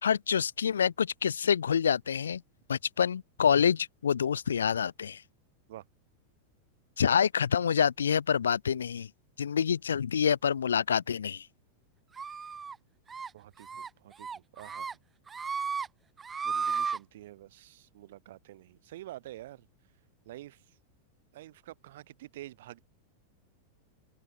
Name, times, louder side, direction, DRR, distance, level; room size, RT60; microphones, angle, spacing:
voice 1, 0.0-2.4 2.7-5.2 7.0-9.1 9.4-11.5, left 7 dB, 70° left, 1.3 m, -27 dB
sound 1, 12.2-12.7 13.1-13.3 13.6-13.9 14.2-14.9 15.3-15.9 16.2-17.0, right 6 dB, 15° right, 0.5 m, -34 dB
voice 2, 13.3-14.9 16.4-19.7 20.3-20.6 21.3-22.8, right 15 dB, 55° right, 4.2 m, -48 dB
figure-of-eight pair, 90°, 0 cm